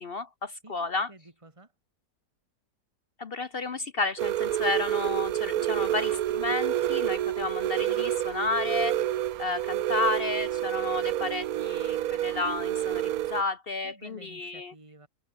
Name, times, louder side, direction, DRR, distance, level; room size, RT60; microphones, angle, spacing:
voice 1, 0.0-1.1 3.2-8.9 9.4-14.7, left 3 dB, 45° left, 0.8 m, -32 dB
voice 2, 0.6-1.7 13.8-15.1, right 2 dB, 15° right, 3.2 m, -52 dB
sound 1, 4.2-13.4, right 12 dB, 65° right, 1.1 m, -28 dB
omnidirectional pair, 1.8 m